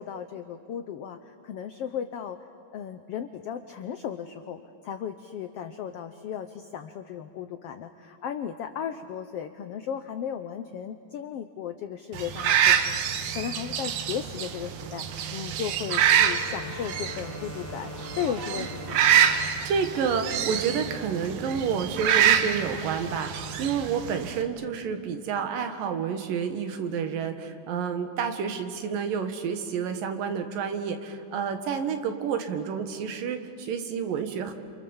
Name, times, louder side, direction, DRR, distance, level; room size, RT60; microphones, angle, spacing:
voice 1, 0.0-2.4 2.7-19.0, left 8 dB, 85° left, 9 dB, 1.3 m, -35 dB
sound 1, 12.1-24.4, right 9 dB, 70° right, 2.4 m, -26 dB
Wind instrument woodwind instrument, 16.1-19.7, left 6 dB, 55° left, 2.2 m, -43 dB
voice 2, 19.3-34.5, right 6 dB, 90° right, 7 dB, 3.3 m, -30 dB
29.0 x 27.5 x 7.2 m, 2.4 s
omnidirectional pair, 3.8 m